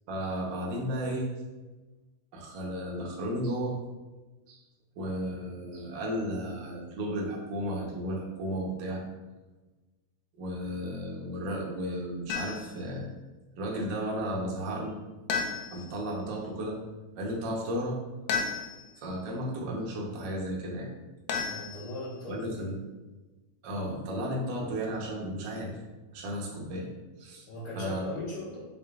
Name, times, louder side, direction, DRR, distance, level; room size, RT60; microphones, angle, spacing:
voice 1, 0.1-1.3 2.3-3.7 4.5-4.6 5.0-9.0 10.4-13.1 13.6-15.0 15.7-16.8 17.1-18.0 19.0-20.9 22.2-22.8 23.6-25.8 26.1-26.9 27.2-27.4 27.7-28.0, equal, 90° right, -2 dB, 1.0 m, -34 dB
sound 1, 12.3-12.8 15.3-16.0 18.3-19.0 21.3-22.2, left 5 dB, 80° left, 2.0 m, -33 dB
voice 2, 21.4-22.4 27.5-28.6, left 2 dB, 65° left, -13 dB, 2.7 m, -38 dB
5.5 x 4.1 x 2.4 m, 1.2 s
omnidirectional pair, 3.4 m